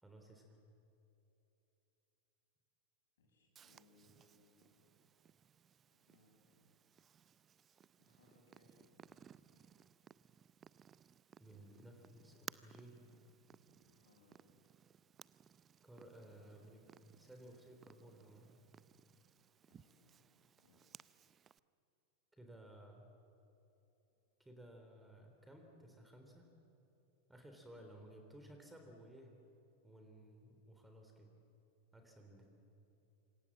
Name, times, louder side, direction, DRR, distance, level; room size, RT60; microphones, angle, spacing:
voice 1, 0.0-0.5 11.4-13.0 15.8-18.7 22.3-23.0 24.4-26.5 27.3-29.3 29.8-31.3 31.9-32.5, right 1 dB, 5° right, 3 dB, 3.7 m, -57 dB
voice 2, 3.2-4.9 5.2-5.4 5.9-6.6 8.0-9.6 13.7-14.4 19.4-20.3 20.6-21.2, left 2 dB, 65° left, 1 dB, 7.5 m, -71 dB
Purr, 3.5-21.6, right 8 dB, 25° right, 0.5 m, -61 dB
27.0 x 26.5 x 7.5 m, 3.0 s
figure-of-eight pair, 90°, 0 cm